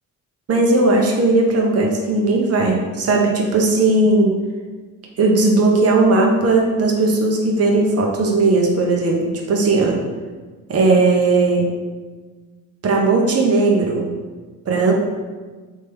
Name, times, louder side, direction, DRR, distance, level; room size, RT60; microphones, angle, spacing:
voice 1, 0.5-4.4 5.2-10.0 10.7-11.7 12.8-14.1 14.7-14.9, right 3 dB, 35° right, 0 dB, 0.8 m, -17 dB
3.2 x 3.0 x 3.4 m, 1.4 s
hypercardioid pair, 45°, 41 cm